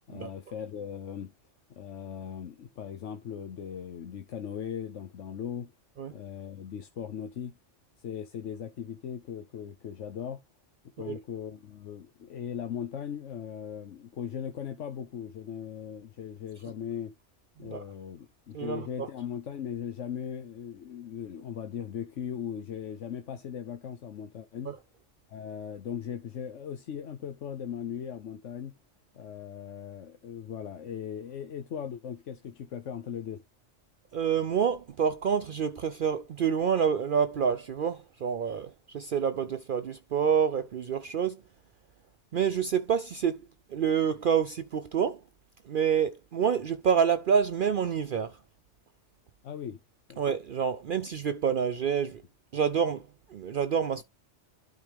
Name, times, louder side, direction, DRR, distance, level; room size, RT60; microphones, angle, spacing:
voice 1, 0.1-1.3 1.7-5.7 6.1-7.6 8.0-10.4 11.0-17.1 17.6-24.7 25.3-28.7 29.1-33.4 49.4-49.8 50.1-50.2, left 8 dB, 85° left, 1.2 m, -38 dB
voice 2, 18.5-19.1 24.7-24.8 34.1-41.4 42.3-43.4 43.7-45.2 45.7-48.4 50.2-52.2 52.5-53.0 53.3-54.0, right 7 dB, 55° right, 0.6 m, -27 dB
12.0 x 4.2 x 3.5 m
omnidirectional pair, 1.2 m